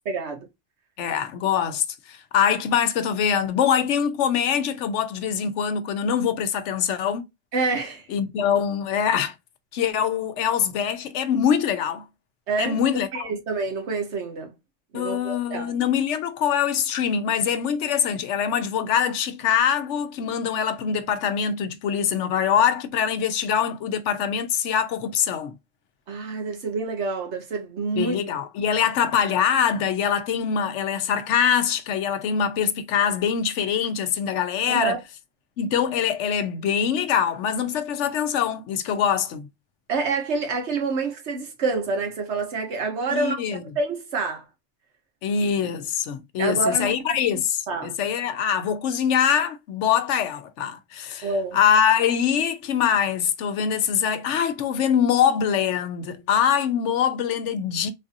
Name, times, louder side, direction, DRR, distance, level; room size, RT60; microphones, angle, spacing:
voice 1, 0.1-0.5 7.5-8.1 12.5-12.8 13.1-14.5 14.9-15.7 26.1-28.2 34.7-35.0 39.9-43.4 43.8-44.4 46.4-47.2 47.7-47.9 51.2-51.6, right 4 dB, 70° right, 1.3 m, -27 dB
voice 2, 1.0-7.2 8.1-9.3 9.7-12.0 12.6-13.3 14.9-25.5 28.0-35.0 35.6-39.5 43.1-43.6 45.2-51.3 51.5-57.9, left 8 dB, 80° left, 0.9 m, -23 dB
4.0 x 2.6 x 2.5 m
omnidirectional pair, 1.2 m